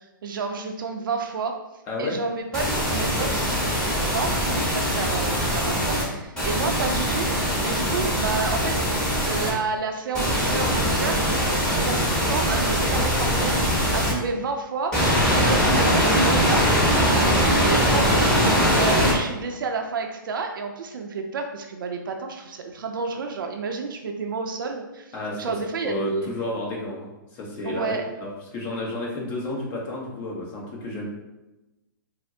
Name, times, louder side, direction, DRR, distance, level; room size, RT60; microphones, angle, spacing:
voice 1, 0.2-1.6 2.0-3.7 4.0-7.3 7.6-15.0 15.3-26.3 27.6-28.1, right 4 dB, 70° right, 4 dB, 0.5 m, -30 dB
voice 2, 1.9-2.2 13.7-14.0 25.1-25.5 25.8-31.1, left 2 dB, 30° left, -3 dB, 0.9 m, -32 dB
sound 1, 2.5-6.0 6.4-9.5 10.1-14.1 14.9-19.1, equal, 5° left, 1.2 m, -22 dB
4.2 x 2.0 x 2.7 m, 1.0 s
hypercardioid pair, 135°, 12 cm